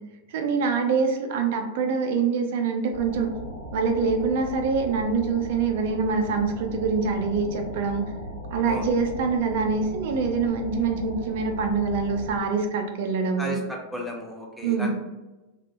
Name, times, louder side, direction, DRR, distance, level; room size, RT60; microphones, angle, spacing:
voice 1, 0.3-3.3 3.7-8.1 8.5-13.6 14.6-14.9, right 5 dB, 50° right, 5 dB, 0.4 m, -25 dB
sound 1, 2.9-12.4, left 1 dB, 75° left, 0.5 m, -38 dB
voice 2, 13.4-14.9, equal, 5° left, -1 dB, 0.6 m, -34 dB
2.5 x 2.1 x 2.8 m, 1.1 s
figure-of-eight pair, 90°, 0 cm